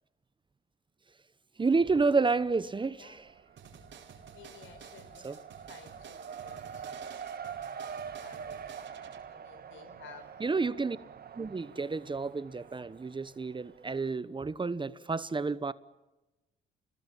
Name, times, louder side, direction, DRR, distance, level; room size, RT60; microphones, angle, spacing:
voice 1, 1.6-3.2 5.2-5.4 10.4-11.0 11.4-15.7, right 4 dB, 25° right, 1.0 m, -30 dB
Race car auto racing, 1.6-2.4 2.7-14.0, right 7 dB, 50° right, 1.8 m, -45 dB
sound 1, 3.6-9.2, right 7 dB, 70° right, 5.0 m, -52 dB
voice 2, 4.3-7.1 7.7-8.9 9.3-10.3, left 7 dB, 80° left, 5.0 m, -55 dB
29.5 x 21.0 x 8.5 m
cardioid pair, 90°, 20 cm